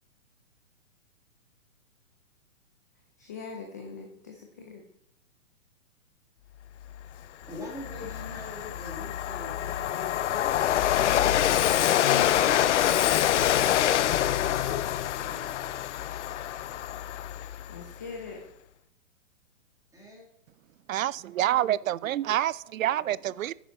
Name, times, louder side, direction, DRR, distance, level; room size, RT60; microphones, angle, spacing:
voice 1, 3.2-4.8 11.7-13.0 17.7-18.4, left 5 dB, 15° left, 0.3 m, -41 dB
Train, 7.0-7.1 7.5-17.9, left 11 dB, 65° left, 0.6 m, -26 dB
voice 2, 7.5-10.9 15.0-16.0 19.9-20.2, left 2 dB, 10° right, 1.9 m, -43 dB
voice 3, 20.9-23.5, right 12 dB, 85° right, 0.5 m, -27 dB
9.9 x 6.9 x 5.0 m
hypercardioid pair, 145°, 39 cm